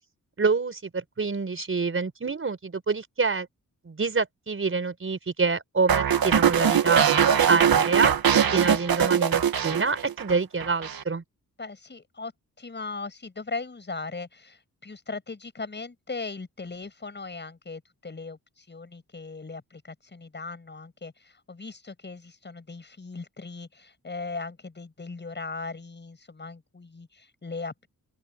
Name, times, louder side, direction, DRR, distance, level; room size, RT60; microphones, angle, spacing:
voice 1, 0.4-3.5 3.8-8.1 8.5-11.2, right 4 dB, 35° right, 5.1 m, -27 dB
sound 1, 5.9-10.3 10.6-11.0, right 8 dB, 75° right, 1.8 m, -22 dB
voice 2, 11.6-12.3 12.6-27.9, left 3 dB, 30° left, 7.4 m, -38 dB
open air
wide cardioid pair, 150°, 36 cm